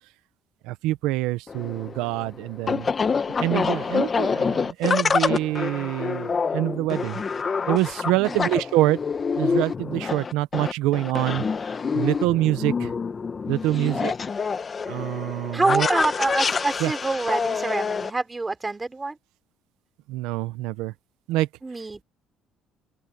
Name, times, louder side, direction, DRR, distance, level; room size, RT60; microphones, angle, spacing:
voice 1, 0.7-2.9 3.4-7.2 7.7-9.0 9.4-11.4 11.9-12.9 13.5-14.1 14.9-15.9 16.8-16.9 20.1-20.9 21.3-21.5, right 17 dB, 85° right, 1.1 m, -25 dB
sound 1, 1.5-18.1, left 5 dB, 30° left, 1.2 m, -27 dB
voice 2, 8.2-8.6 13.7-14.1 15.5-19.2 21.6-22.0, right 3 dB, 20° right, 3.4 m, -27 dB
open air
cardioid pair, 105°, 0 cm